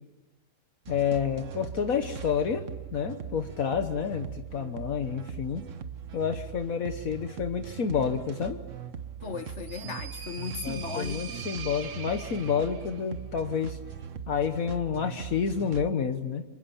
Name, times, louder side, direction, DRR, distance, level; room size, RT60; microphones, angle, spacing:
sound 1, 0.8-15.9, right 8 dB, 60° right, 1.4 m, -40 dB
voice 1, 0.9-2.6 2.9-5.6 6.1-8.6 10.6-13.8 14.3-16.4, left 7 dB, 70° left, 1.6 m, -29 dB
voice 2, 9.2-11.5, left 5 dB, 55° left, 1.6 m, -37 dB
sound 2, 9.3-13.0, right 7 dB, 85° right, 1.8 m, -43 dB
30.0 x 26.0 x 7.2 m
omnidirectional pair, 1.5 m